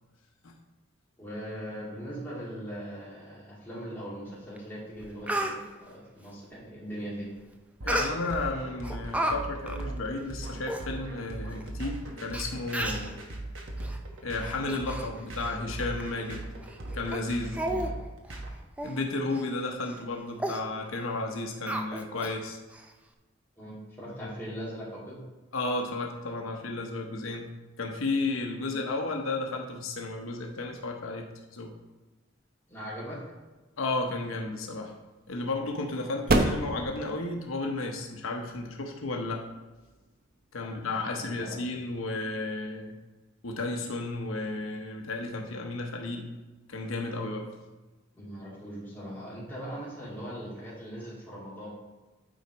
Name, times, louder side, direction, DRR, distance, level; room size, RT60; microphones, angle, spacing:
voice 1, 1.2-7.3 17.6-17.8 23.6-25.2 32.7-33.2 40.6-41.6 48.1-51.7, equal, 10° left, -7 dB, 2.4 m, -40 dB
Speech, 4.6-4.7 5.0-5.6 7.9-8.4 8.8-9.3 9.7-9.8 10.4-10.5 10.7-10.8 11.6-11.7 12.3-12.4 12.7-13.1 13.8-14.0 14.4-15.1 15.4-15.6 16.0-16.1 16.6-16.8 17.1-17.2 17.5-17.9 18.2-18.4 18.8-19.0 19.3-19.5 19.8-20.0 20.4-20.6 21.7-22.3 22.7-22.8, right 1 dB, 5° right, 0.4 m, -32 dB
voice 2, 7.8-13.2 14.2-16.4 16.9-17.6 18.8-22.6 24.2-24.3 25.5-27.5 27.8-31.3 31.5-31.7 33.8-34.9 35.3-39.5 40.5-43.0 43.4-46.4 46.7-47.5, left 2 dB, 90° left, 2 dB, 0.9 m, -33 dB
sound 1, 7.8-18.5, right 1 dB, 70° right, 1.2 m, -38 dB
sound 2, 33.7-41.0, right 2 dB, 45° right, 0.7 m, -33 dB
8.9 x 4.0 x 4.5 m, 1.2 s
head